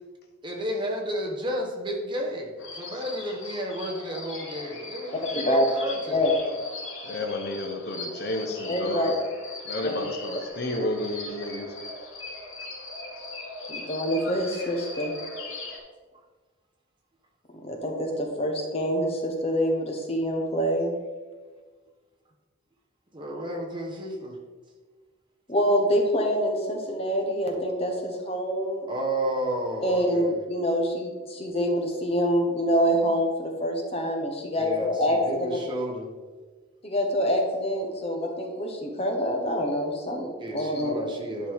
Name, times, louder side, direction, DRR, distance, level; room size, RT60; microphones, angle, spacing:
voice 1, 0.4-6.2 23.1-24.4 28.9-30.4 34.6-36.1 40.4-41.5, equal, 25° right, 0 dB, 1.1 m, -32 dB
sound 1, 2.6-15.8, left 2 dB, 70° left, 2.1 m, -39 dB
voice 2, 5.3-5.7 6.1-6.4 8.7-9.1 9.8-10.0 13.7-15.1 17.6-20.9 25.5-28.9 29.8-35.2 36.8-40.9, equal, 30° left, 2 dB, 1.1 m, -26 dB
voice 3, 7.0-9.1 9.6-11.7, left 1 dB, 50° left, 3 dB, 1.0 m, -31 dB
11.0 x 5.4 x 3.6 m, 1.4 s
head